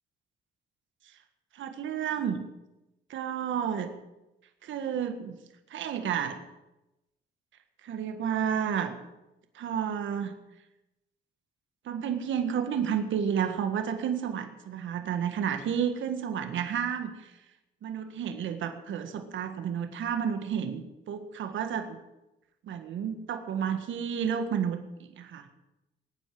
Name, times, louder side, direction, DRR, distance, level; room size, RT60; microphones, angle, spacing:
voice 1, 1.5-2.4 3.1-3.9 4.6-5.4 5.7-6.4 7.8-9.0 9.5-10.3 11.8-17.3 17.8-22.0 22.6-25.5, right 8 dB, 75° right, 7 dB, 1.7 m, -31 dB
20.0 x 9.4 x 7.8 m, 0.95 s
cardioid pair, 90°, 20 cm